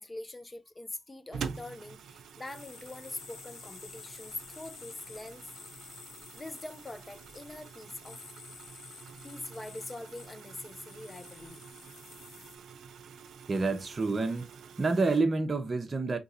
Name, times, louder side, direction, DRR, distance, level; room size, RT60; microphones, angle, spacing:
voice 1, 0.0-5.5 6.3-8.2 9.2-11.6, left 2 dB, 30° left, 0.7 m, -43 dB
sound 1, 1.3-15.2, right 6 dB, 80° right, 0.5 m, -47 dB
sound 2, 2.5-12.6, left 7 dB, 80° left, 0.7 m, -51 dB
voice 2, 13.5-14.5 14.8-16.2, right 3 dB, 40° right, 0.7 m, -28 dB
2.9 x 2.6 x 4.0 m
supercardioid pair, 50°, 0 cm